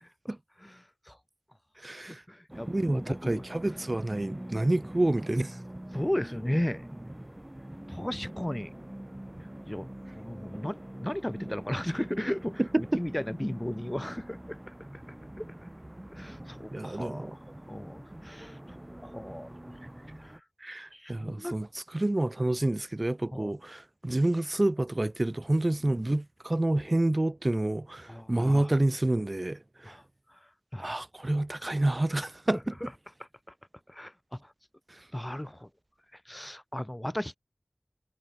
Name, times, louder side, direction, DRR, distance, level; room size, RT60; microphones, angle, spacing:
voice 1, 0.0-0.3 0.6-1.2 2.1-3.4 5.9-6.9 7.9-8.7 9.7-9.9 10.2-12.6 12.9-14.7 15.4-15.5 16.1-18.6 19.0-19.5 20.2-20.4 20.9-21.6 23.3-23.5 28.1-28.7 29.9-30.0 30.3-30.4 30.7-31.0 32.8-32.9 33.9-34.5 35.1-35.7 36.1-37.4, left 1 dB, 20° left, 0.8 m, -35 dB
voice 2, 1.8-2.2 2.7-5.6 12.6-13.0 16.7-17.4 20.6-30.0 30.8-32.8 34.9-35.0, right 1 dB, 45° right, 0.4 m, -28 dB
sound 1, 2.5-20.4, right 1 dB, 20° right, 1.1 m, -44 dB
wide cardioid pair, 40°, 0 cm